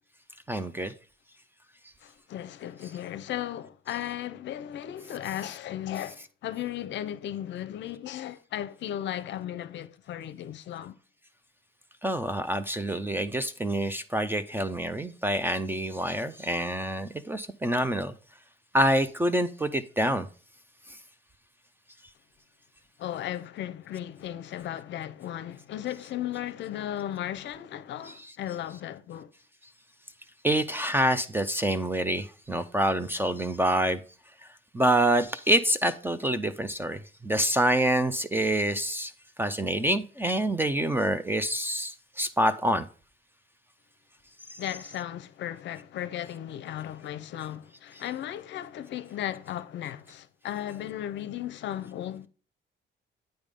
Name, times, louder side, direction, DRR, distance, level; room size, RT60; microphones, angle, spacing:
voice 1, 0.5-0.9 12.0-18.1 18.7-20.3 28.1-28.2 30.4-34.0 34.7-39.1 39.4-42.9, right 1 dB, 10° right, 0.4 m, -26 dB
voice 2, 2.0-10.9 23.0-29.3 44.6-52.3, left 11 dB, 65° left, 0.6 m, -36 dB
8.9 x 3.5 x 5.1 m
cardioid pair, 150°, 20 cm